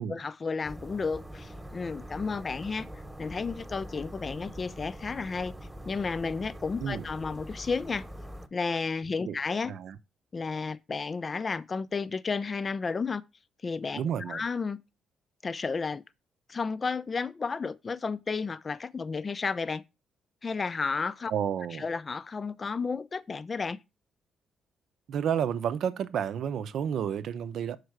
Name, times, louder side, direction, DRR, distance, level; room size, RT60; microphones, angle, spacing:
voice 1, 0.0-2.9 3.2-5.5 5.9-8.0 8.5-9.7 10.3-13.2 13.6-14.8 15.4-16.0 16.5-19.8 20.4-21.3 21.7-23.8, left 4 dB, 35° left, 0.5 m, -32 dB
sound 1, 0.6-8.5, equal, 5° right, 1.1 m, -43 dB
voice 2, 14.0-14.4 21.3-21.9 25.1-27.8, right 8 dB, 70° right, 0.6 m, -31 dB
6.5 x 4.7 x 4.7 m
cardioid pair, 90°, 0 cm